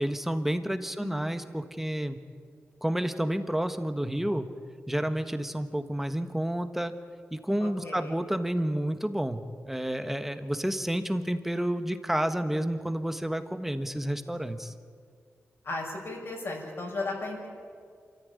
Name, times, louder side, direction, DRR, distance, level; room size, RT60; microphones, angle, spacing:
voice 1, 0.0-2.2 2.8-4.5 4.9-6.9 7.3-14.7, right 1 dB, 5° right, 9 dB, 1.4 m, -30 dB
voice 2, 1.0-1.4 7.6-8.1 15.6-17.5, left 2 dB, 60° left, -2 dB, 6.1 m, -36 dB
27.0 x 14.0 x 9.7 m, 2.1 s
wide cardioid pair, 90°, 5 cm